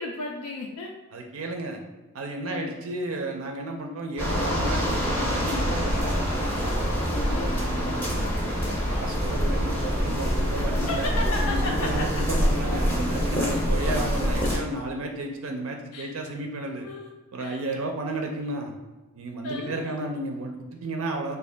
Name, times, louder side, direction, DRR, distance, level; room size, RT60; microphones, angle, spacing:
voice 1, 0.0-0.9 2.4-2.8 7.1-7.6 10.6-12.2 13.1-13.2 13.5-13.6 14.4-14.5 15.9-16.1 16.8-17.1 17.4-17.6 19.4-20.1, left 2 dB, 80° left, 0 dB, 0.4 m, -34 dB
voice 2, 1.1-1.8 2.1-6.1 7.5-11.1 11.4-16.9 17.3-18.7 19.2-21.4, right 2 dB, 65° right, 2 dB, 0.4 m, -33 dB
sound 1, 4.2-14.6, equal, 10° left, 0.6 m, -25 dB
3.6 x 2.3 x 3.2 m, 1.2 s
head